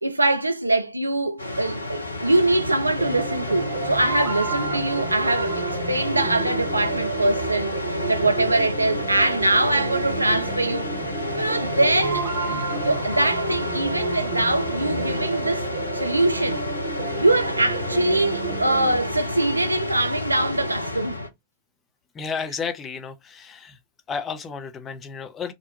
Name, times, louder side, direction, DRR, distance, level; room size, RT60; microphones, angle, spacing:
voice 1, 0.0-10.9 11.4-15.6 15.9-16.6 17.2-21.2, right 2 dB, 85° right, 0.3 m, -23 dB
sound 1, 1.4-21.3, left 2 dB, 80° left, 0.5 m, -31 dB
sound 2, 3.0-19.0, right 5 dB, 50° right, 0.7 m, -31 dB
voice 2, 8.2-8.5 22.1-23.8 24.1-25.5, left 5 dB, 25° left, 0.5 m, -32 dB
2.6 x 2.2 x 2.7 m
figure-of-eight pair, 90°, 0 cm